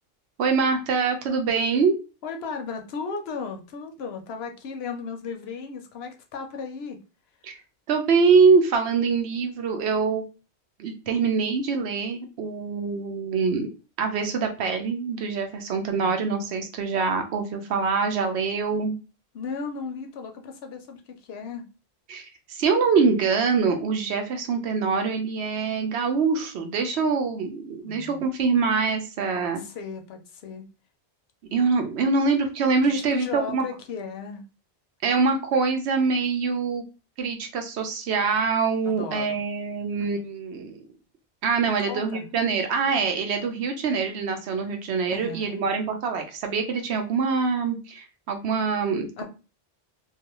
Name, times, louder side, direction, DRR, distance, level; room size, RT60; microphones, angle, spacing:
voice 1, 0.4-1.9 7.4-7.5 7.9-10.2 10.8-13.7 14.0-19.0 22.1-29.6 31.5-33.6 35.0-36.8 37.2-40.8 41.4-49.2, right 5 dB, 75° right, 0.9 m, -24 dB
voice 2, 2.2-7.0 16.0-16.4 19.3-21.6 27.8-28.2 29.6-30.7 32.8-34.4 38.8-39.4 40.0-40.1 41.8-42.3 45.1-45.6 49.2-49.3, left 5 dB, 70° left, 0.8 m, -36 dB
2.4 x 2.3 x 2.9 m
omnidirectional pair, 1.1 m